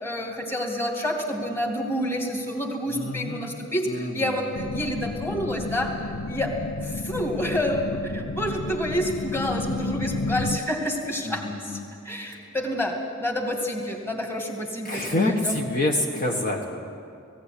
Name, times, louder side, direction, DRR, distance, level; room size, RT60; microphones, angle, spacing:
voice 1, 0.0-5.9 6.3-6.5 6.8-11.8 12.0-15.6, equal, 10° left, 1 dB, 2.3 m, -28 dB
voice 2, 2.9-3.6 3.8-4.5 11.2-11.9 14.8-16.8, left 1 dB, 40° left, 0 dB, 1.5 m, -27 dB
sound 1, 4.5-10.6, left 3 dB, 80° left, 0.6 m, -31 dB
19.0 x 16.0 x 9.8 m, 2.5 s
head